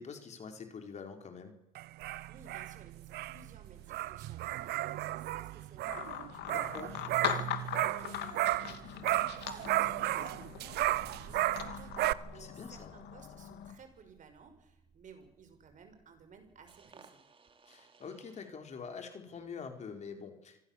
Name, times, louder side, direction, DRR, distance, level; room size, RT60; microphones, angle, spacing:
voice 1, 0.0-1.6 6.4-6.9 12.3-12.9 17.7-20.6, left 5 dB, 40° left, 5 dB, 4.4 m, -45 dB
sound 1, 1.7-8.8 9.0-12.1, right 16 dB, 75° right, 0.8 m, -34 dB
voice 2, 2.3-17.2, right 5 dB, 50° right, 7 dB, 5.7 m, -58 dB
sound 2, 5.9-13.8, left 11 dB, 80° left, 2.6 m, -41 dB
sound 3, 10.7-18.5, right 6 dB, 30° right, 3.0 m, -58 dB
26.5 x 19.0 x 7.3 m, 0.88 s
cardioid pair, 110°, 17 cm